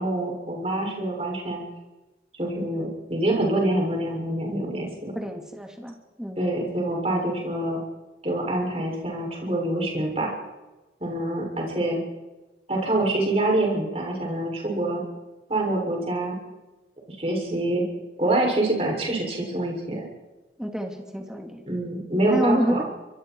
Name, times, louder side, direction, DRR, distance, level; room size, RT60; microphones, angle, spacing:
voice 1, 0.0-1.6 2.4-5.1 6.4-7.8 8.2-10.3 11.0-12.0 12.7-15.0 15.5-16.4 17.1-17.8 18.2-20.0 21.7-22.8, right 1 dB, 35° right, -1 dB, 6.9 m, -26 dB
voice 2, 5.1-6.5 20.6-21.6 22.3-22.8, equal, 5° right, 2 dB, 2.5 m, -28 dB
26.0 x 22.0 x 4.7 m, 1.1 s
head